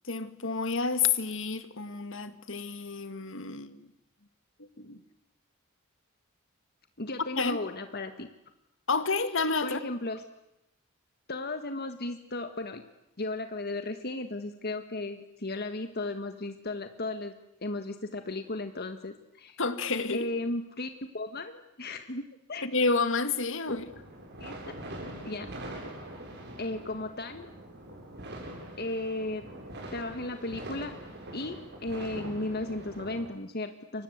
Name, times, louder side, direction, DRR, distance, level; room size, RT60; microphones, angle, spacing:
voice 1, 0.1-3.9 4.8-5.0 7.3-7.6 8.9-9.8 19.6-20.3 22.6-23.8, left 4 dB, 65° left, 2.0 m, -29 dB
voice 2, 7.0-8.3 9.6-10.2 11.3-12.8 13.2-17.3 17.6-19.6 20.1-22.6 23.7-23.8 24.4-24.5 25.2-25.5 26.6-27.5 28.8-29.5 29.9-30.9 31.3-34.0, left 2 dB, 50° left, 1.7 m, -35 dB
sound 1, 23.7-33.3, right 1 dB, 55° right, 7.6 m, -43 dB
29.5 x 24.5 x 8.2 m
head